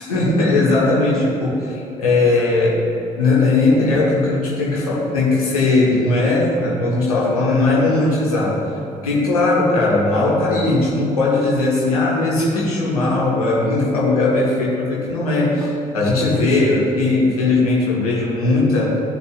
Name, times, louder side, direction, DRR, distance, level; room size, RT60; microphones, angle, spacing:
voice 1, 0.0-2.8 3.2-8.7 9.0-19.0, left 2 dB, 80° left, -5 dB, 1.7 m, -18 dB
16.0 x 6.8 x 2.5 m, 2.8 s
figure-of-eight pair, 40°, 19 cm